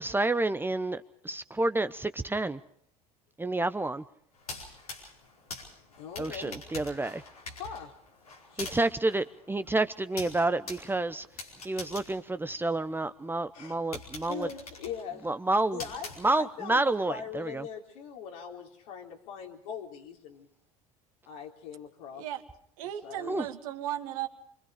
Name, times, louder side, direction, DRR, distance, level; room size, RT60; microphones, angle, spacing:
voice 1, 0.0-2.6 3.4-4.0 6.2-7.2 8.6-11.3 11.6-14.5 15.2-15.8 16.2-17.6 23.3-23.4, right 2 dB, 10° right, 11 dB, 0.9 m, -29 dB
sound 1, 4.3-13.1 13.5-13.6 13.9-16.7, left 3 dB, 90° left, 4.8 m, -45 dB
voice 2, 6.0-6.6 7.6-7.9 8.5-8.8 11.7-11.9 13.5-13.8 14.3-15.4 15.7-20.5 21.3-22.3 23.0-23.5, left 7 dB, 65° left, 1 dB, 3.8 m, -41 dB
voice 3, 22.8-24.3, right 12 dB, 70° right, 5 dB, 2.1 m, -35 dB
26.5 x 24.0 x 5.0 m, 0.69 s
figure-of-eight pair, 70°, 18 cm